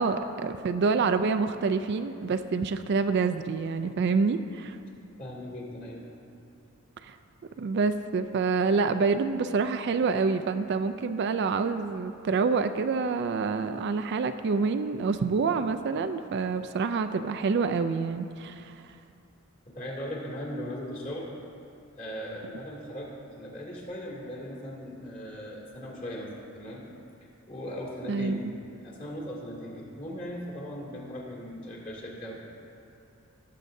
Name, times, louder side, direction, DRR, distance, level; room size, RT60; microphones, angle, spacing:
voice 1, 0.0-4.8 7.0-7.2 7.6-18.8 28.1-28.5, right 4 dB, 55° right, 9 dB, 0.3 m, -27 dB
voice 2, 5.2-6.1 19.7-21.3 21.9-26.9 27.5-28.5 28.8-32.4, equal, 40° left, -3 dB, 2.4 m, -38 dB
18.0 x 7.5 x 2.7 m, 2.6 s
head